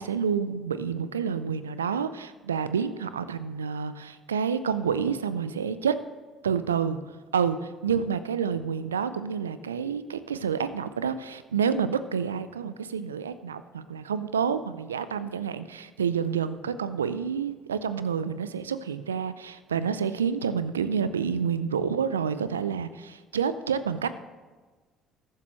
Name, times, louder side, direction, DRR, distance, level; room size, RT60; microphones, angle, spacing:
voice 1, 0.0-6.0 6.4-24.2, right 7 dB, 85° right, 14 dB, 0.4 m, -29 dB
21.0 x 7.4 x 3.1 m, 1.4 s
hypercardioid pair, 55°, 0 cm